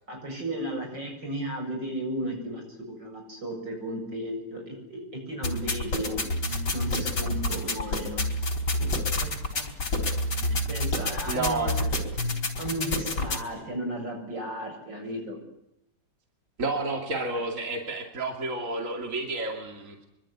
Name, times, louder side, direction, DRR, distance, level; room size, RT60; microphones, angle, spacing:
voice 1, 0.1-2.6 3.0-8.3 8.8-8.9 9.2-9.7 10.1-11.9 12.6-15.4, right 1 dB, 80° right, 3 dB, 8.2 m, -35 dB
sound 1, 5.4-13.4, left 1 dB, 75° left, 4.4 m, -28 dB
voice 2, 11.3-12.1 16.6-20.1, right 2 dB, 45° right, 3 dB, 2.9 m, -31 dB
25.5 x 24.0 x 9.8 m, 0.80 s
omnidirectional pair, 1.9 m